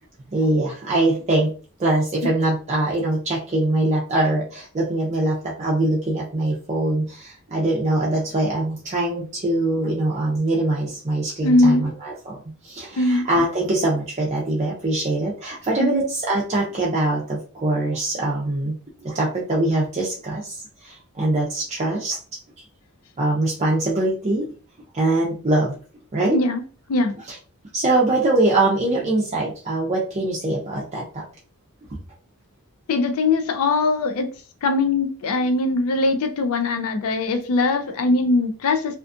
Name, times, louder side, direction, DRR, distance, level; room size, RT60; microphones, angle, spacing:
voice 1, 0.3-1.5 1.8-12.4 12.6-18.8 19.0-22.2 23.2-24.5 24.9-25.8 26.1-26.4 27.3-27.4 27.7-31.2 31.9-32.0, right 2 dB, 30° right, 0.4 m, -23 dB
voice 2, 11.4-11.8 13.0-13.2 15.8-16.0 26.3-26.6 26.9-27.1 32.9-34.3 34.6-39.0, left 2 dB, 70° left, 0.4 m, -21 dB
2.5 x 2.4 x 2.4 m
head